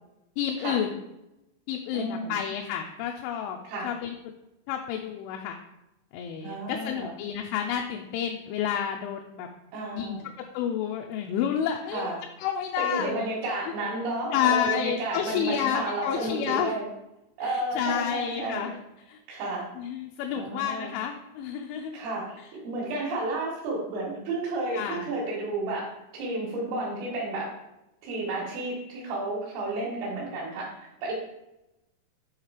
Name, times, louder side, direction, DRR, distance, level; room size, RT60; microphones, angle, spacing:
voice 1, 0.4-1.0 1.7-3.6 3.8-4.3 4.7-5.6 6.1-9.5 9.9-10.2 10.5-12.1 12.4-13.2 14.3-16.8 17.4-18.8 19.1-19.2 19.8-22.0 24.7-25.1, left 9 dB, 85° left, 2 dB, 2.8 m, -30 dB
voice 2, 1.9-2.4 3.6-3.9 6.4-7.1 9.7-10.3 11.9-12.2 12.8-16.9 17.4-18.7 19.3-19.7 20.4-20.9 21.9-25.9 26.1-27.5 28.0-31.1, right 2 dB, 90° right, -6 dB, 4.0 m, -32 dB
8.9 x 3.2 x 4.9 m, 0.93 s
omnidirectional pair, 5.7 m